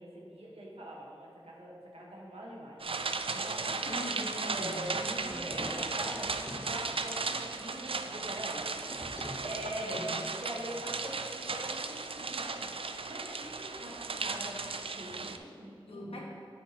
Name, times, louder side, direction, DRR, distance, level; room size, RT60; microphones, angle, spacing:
voice 1, 0.0-2.8 3.3-3.9 4.5-8.7 9.1-16.0, right 1 dB, 85° right, -4 dB, 1.4 m, -43 dB
sound 1, 2.8-15.4, right 4 dB, 70° right, 0.4 m, -36 dB
voice 2, 3.8-5.4 9.8-10.2 15.9-16.2, equal, 75° left, -3 dB, 1.6 m, -41 dB
sound 2, 5.1-6.8 8.9-9.5, left 1 dB, 25° left, 1.1 m, -45 dB
9.0 x 7.2 x 3.0 m, 2.5 s
wide cardioid pair, 45°, 10 cm